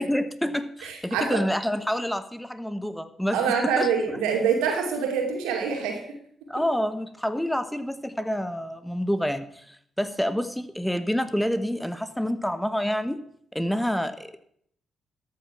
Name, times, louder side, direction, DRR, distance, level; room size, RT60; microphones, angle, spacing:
voice 1, 0.0-3.9 6.5-13.2 13.5-14.4, equal, 5° left, 12 dB, 1.0 m, -28 dB
voice 2, 0.8-1.4 3.3-6.0, right 6 dB, 80° right, 2 dB, 2.5 m, -25 dB
13.0 x 7.3 x 5.8 m, 0.67 s
hypercardioid pair, 45°, 0 cm